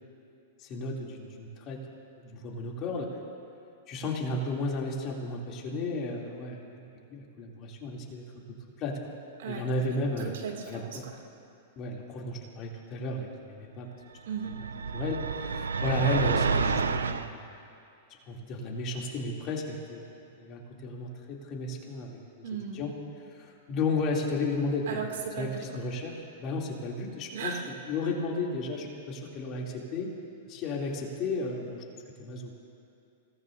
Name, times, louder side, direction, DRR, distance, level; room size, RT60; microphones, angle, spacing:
voice 1, 0.6-1.8 2.2-3.1 3.9-8.2 8.8-9.0 9.4-10.3 10.7-11.0 11.8-13.9 14.9-17.4 18.3-20.1 20.4-22.5 22.7-22.9 23.4-25.0 25.4-27.6 27.9-30.1 30.5-31.8 32.2-32.5, left 2 dB, 40° left, -2 dB, 3.0 m, -33 dB
voice 2, 10.2-11.2 14.3-14.6 22.4-22.9 24.9-25.6 27.3-27.7, right 6 dB, 70° right, 2 dB, 2.6 m, -36 dB
sound 1, 14.4-17.3, right 5 dB, 85° right, 0.6 m, -29 dB
28.0 x 18.0 x 2.7 m, 2.6 s
hypercardioid pair, 110°, 0 cm